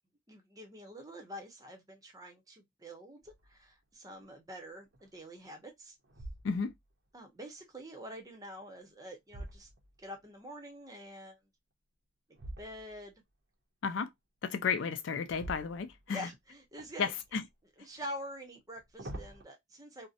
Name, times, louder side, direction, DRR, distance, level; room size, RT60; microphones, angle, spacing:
voice 1, 0.3-5.9 7.1-9.7 10.0-11.4 12.6-13.2 16.1-17.1 17.8-20.1, equal, 20° right, 0.7 m, -46 dB
sound 1, 3.2-3.7 4.2-4.3 4.9-5.5 6.0-6.9 8.6-10.3 12.3-13.1 15.2-16.3 16.8-17.5 18.6-19.4, right 1 dB, 60° right, 0.6 m, -47 dB
voice 2, 14.4-16.3 17.0-17.4, left 6 dB, 70° left, 0.4 m, -33 dB
2.7 x 2.1 x 2.4 m
head